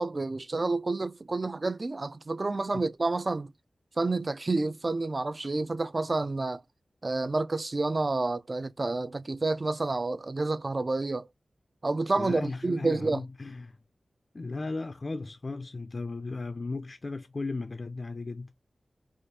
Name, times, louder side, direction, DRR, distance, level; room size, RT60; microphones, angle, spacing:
voice 1, 0.0-3.5 4.0-6.6 7.0-11.3 11.8-13.2, right 3 dB, 40° right, 0.4 m, -29 dB
voice 2, 12.2-13.8 14.3-18.5, left 3 dB, 45° left, 0.5 m, -36 dB
4.8 x 2.4 x 2.7 m
wide cardioid pair, 80°, 0 cm